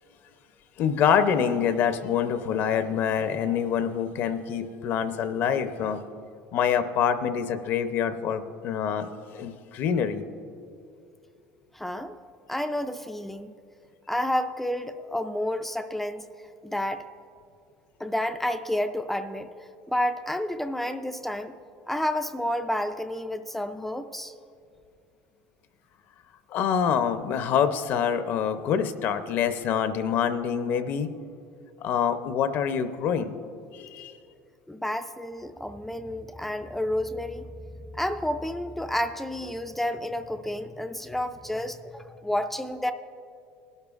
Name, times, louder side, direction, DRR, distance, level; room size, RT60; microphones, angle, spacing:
voice 1, 0.8-6.0 6.5-10.2 26.5-31.1 31.8-33.4 33.7-34.1, left 8 dB, 50° left, 10 dB, 0.6 m, -26 dB
voice 2, 11.7-12.2 12.5-13.6 14.1-16.3 16.6-17.0 18.0-21.5 21.9-24.3 34.7-37.5 37.9-42.9, left 1 dB, 5° left, 8 dB, 0.3 m, -30 dB
19.5 x 12.0 x 2.4 m, 2.4 s
cardioid pair, 140°, 5 cm